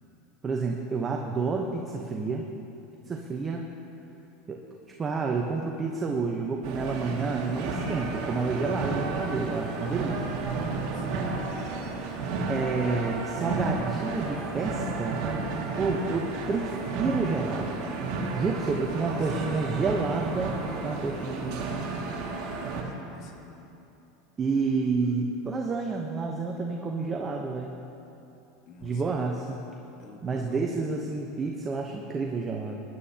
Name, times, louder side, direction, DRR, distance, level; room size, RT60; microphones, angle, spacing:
voice 1, 0.4-2.5 3.1-3.7 4.5-4.6 5.0-10.4 12.5-15.3 15.8-17.8 18.3-21.9 24.4-27.7 28.8-29.6 30.2-32.8, right 4 dB, 25° right, 0 dB, 0.9 m, -29 dB
sound 1, 6.6-22.8, right 3 dB, 60° right, 2.1 m, -32 dB
voice 2, 10.6-11.4 18.6-19.5 22.8-23.7 28.7-29.4 30.0-30.9, left 3 dB, 50° left, 3 dB, 1.6 m, -49 dB
19.0 x 11.0 x 2.9 m, 2.9 s
supercardioid pair, 120°, 0 cm